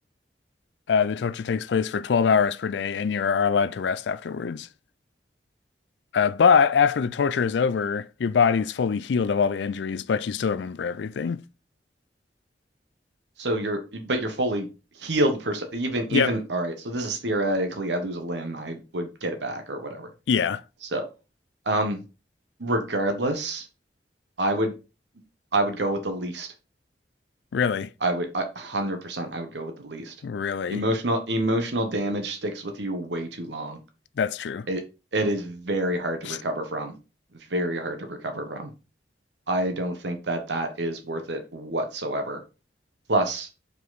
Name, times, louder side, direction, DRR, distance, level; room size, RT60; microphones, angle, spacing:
voice 1, 0.9-4.7 6.1-11.4 16.1-16.3 20.3-20.6 27.5-27.9 30.2-30.8 34.2-34.7 36.3-36.4, left 6 dB, 75° left, 0.4 m, -23 dB
voice 2, 13.4-14.7 14.9-20.1 20.9-21.0 21.6-22.0 22.6-23.7 24.4-24.7 25.5-26.5 28.0-30.1 30.7-33.8 34.7-34.8 35.1-36.9 37.5-38.7 39.5-42.4 43.1-43.5, right 1 dB, 75° right, 1.1 m, -27 dB
5.2 x 4.7 x 4.0 m
head